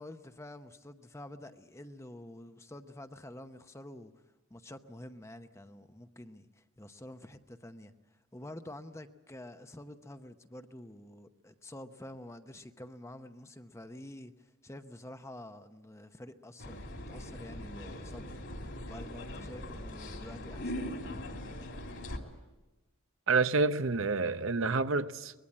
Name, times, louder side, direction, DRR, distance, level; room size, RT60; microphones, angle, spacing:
voice 1, 0.0-4.2 4.5-18.2 18.9-20.9, left 1 dB, 15° left, 0.8 m, -48 dB
sound 1, 16.6-22.2, left 1 dB, 60° left, 2.9 m, -41 dB
voice 2, 23.3-25.3, right 4 dB, 60° right, 0.8 m, -28 dB
23.5 x 21.0 x 8.5 m
head